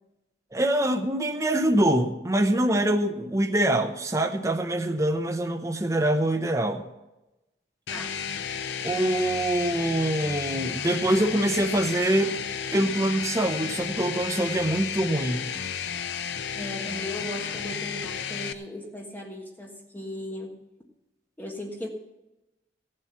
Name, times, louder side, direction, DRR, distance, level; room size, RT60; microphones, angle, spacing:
voice 1, 0.5-6.8 8.8-12.4 12.7-15.5, right 1 dB, 20° right, 4 dB, 0.7 m, -24 dB
sound 1, 7.9-18.5, left 7 dB, 85° left, 0.7 m, -33 dB
voice 2, 16.5-20.6 21.4-21.9, left 1 dB, 10° left, 1 dB, 1.4 m, -37 dB
16.0 x 7.6 x 5.9 m, 0.99 s
head